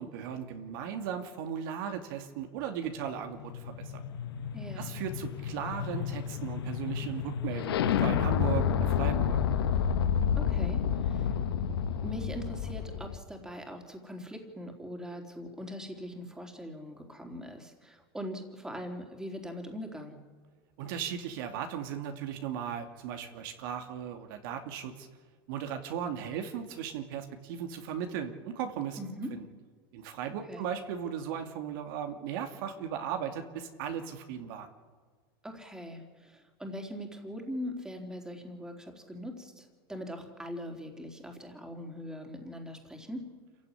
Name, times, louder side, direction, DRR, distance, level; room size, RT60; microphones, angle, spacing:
voice 1, 0.0-4.0 4.8-9.4 20.8-25.1 25.5-29.0 29.3-29.4 29.9-34.7, right 8 dB, 65° right, 5 dB, 2.6 m, -37 dB
sound 1, 3.0-13.2, left 8 dB, 90° left, 1.7 m, -30 dB
voice 2, 4.5-4.9 10.4-11.4 12.0-20.2 29.0-29.3 30.5-30.7 35.4-43.3, equal, 5° right, 3 dB, 3.7 m, -41 dB
26.5 x 16.0 x 9.9 m, 1.5 s
supercardioid pair, 135°, 12 cm